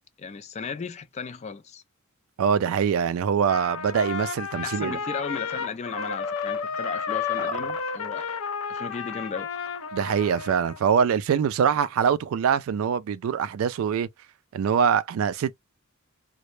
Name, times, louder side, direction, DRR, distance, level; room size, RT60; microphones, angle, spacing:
voice 1, 0.2-1.8 4.5-8.3 8.7-9.5, left 5 dB, 30° left, 0.4 m, -35 dB
voice 2, 2.4-5.0 9.9-14.1 14.5-15.5, right 7 dB, 75° right, 0.3 m, -23 dB
Trumpet, 3.5-10.8, left 6 dB, 85° left, 0.5 m, -32 dB
2.1 x 2.0 x 3.0 m
head